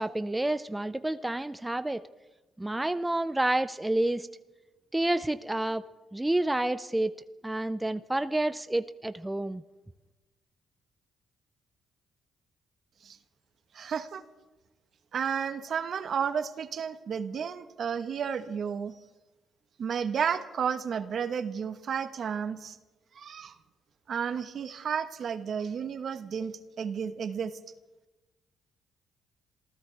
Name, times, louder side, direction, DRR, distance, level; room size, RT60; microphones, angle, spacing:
voice 1, 0.0-2.0 2.6-4.3 4.9-5.8 6.1-7.2 7.4-9.6, right 1 dB, 10° right, 12 dB, 0.6 m, -29 dB
voice 2, 13.7-14.2 15.1-19.0 19.8-22.8 23.1-23.6 24.1-27.6, right 7 dB, 55° right, 10 dB, 1.2 m, -32 dB
27.5 x 15.5 x 3.4 m, 1.1 s
cardioid pair, 90°, 0 cm